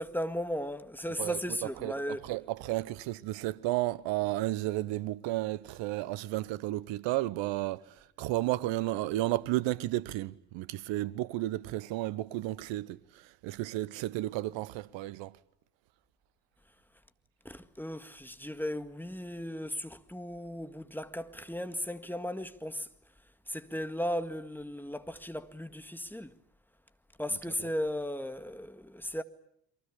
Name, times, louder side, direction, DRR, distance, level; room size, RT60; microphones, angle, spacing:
voice 1, 0.0-2.2 17.5-22.9 23.5-26.3 27.2-29.2, equal, 5° left, 1.8 m, -36 dB
voice 2, 1.2-15.4 27.6-27.7, right 16 dB, 65° right, 1.2 m, -33 dB
30.0 x 23.5 x 8.5 m
hypercardioid pair, 60°, 49 cm